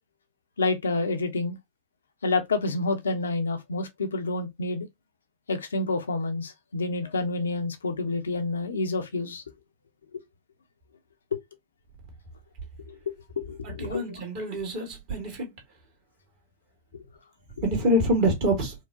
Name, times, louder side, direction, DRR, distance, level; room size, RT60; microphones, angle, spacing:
voice 1, 0.6-1.6 2.2-4.9 5.5-9.4 10.1-10.2 11.3-11.4 12.9-14.2 16.9-17.0, left 3 dB, 70° left, 0.7 m, -29 dB
voice 2, 13.6-15.5 17.6-18.7, equal, 45° right, 1.7 m, -26 dB
4.6 x 2.2 x 2.6 m
figure-of-eight pair, 90°, 0 cm